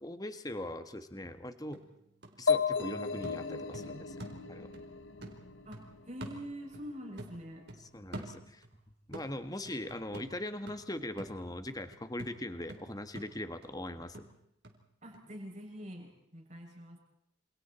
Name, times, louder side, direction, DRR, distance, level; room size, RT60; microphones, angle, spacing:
voice 1, 0.0-1.8 2.4-4.2 4.5-4.7 7.8-8.6 9.1-14.2, left 1 dB, 20° left, 9 dB, 1.6 m, -40 dB
sound 1, 1.3-1.4 1.7-4.9 5.2-6.9 7.2-8.8 9.1-14.8 15.1-15.2, right 1 dB, 55° right, 4.3 m, -48 dB
sound 2, 2.5-6.1, left 5 dB, 75° left, 1.3 m, -34 dB
voice 2, 5.7-7.7 15.0-17.0, equal, 35° right, 1 dB, 7.0 m, -45 dB
28.5 x 28.0 x 4.4 m, 0.75 s
head